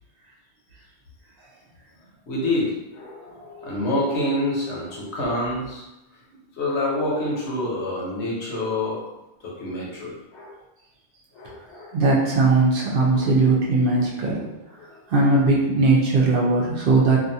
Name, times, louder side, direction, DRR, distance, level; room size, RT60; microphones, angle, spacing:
voice 1, 2.3-5.8 6.6-9.0 9.4-10.5 11.3-11.9 13.1-13.5 14.8-15.0 16.3-16.5, left 1 dB, 75° left, -4 dB, 1.1 m, -27 dB
voice 2, 11.9-14.4 15.1-17.2, right 3 dB, 60° right, -4 dB, 0.7 m, -19 dB
2.6 x 2.4 x 2.7 m, 0.97 s
omnidirectional pair, 1.2 m